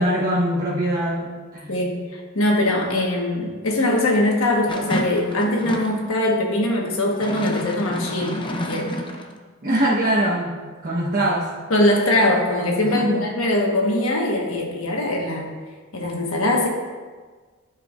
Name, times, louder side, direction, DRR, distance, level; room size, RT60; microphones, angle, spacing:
voice 1, 0.0-1.7 9.6-10.5 10.8-11.5 12.8-13.3, right 1 dB, 45° right, -8 dB, 1.1 m, -22 dB
voice 2, 1.7-8.9 11.7-15.5 15.9-16.7, left 1 dB, 80° left, 0 dB, 1.3 m, -22 dB
sound 1, 4.7-6.0 7.1-9.3, left 1 dB, 25° left, 0.6 m, -29 dB
13.5 x 4.7 x 2.5 m, 1.5 s
head